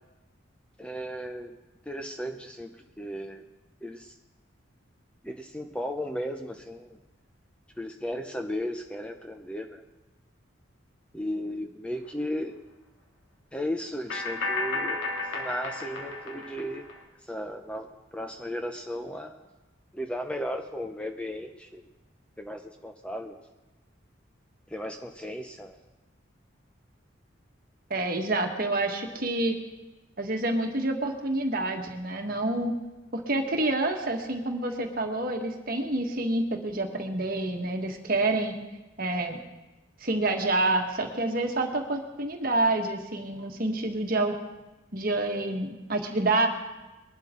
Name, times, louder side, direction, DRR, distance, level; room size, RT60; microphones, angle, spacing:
voice 1, 0.8-1.6 1.9-3.4 3.8-4.1 5.2-7.0 7.8-9.8 11.1-12.5 13.5-15.0 15.3-16.9 17.3-19.4 19.9-21.9 22.4-23.4 24.7-25.8, equal, 5° left, 5 dB, 0.7 m, -35 dB
sound 1, 12.0-12.1 14.1-17.0, left 3 dB, 75° left, 2.6 m, -33 dB
voice 2, 27.9-29.5 30.2-32.7 33.1-38.5 39.0-39.4 40.0-44.3 44.9-46.5, right 2 dB, 45° right, 3 dB, 1.6 m, -28 dB
22.0 x 12.0 x 3.8 m, 1.1 s
head